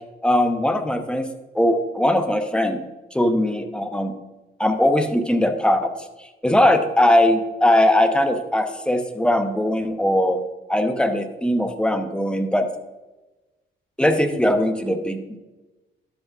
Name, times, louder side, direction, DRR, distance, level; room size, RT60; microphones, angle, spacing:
voice 1, 0.2-2.8 3.1-4.1 4.6-5.9 6.2-10.4 10.7-12.7 14.0-15.4, left 1 dB, 5° left, 6 dB, 0.9 m, -20 dB
11.5 x 8.0 x 2.5 m, 1.1 s
cardioid pair, 90°, 20 cm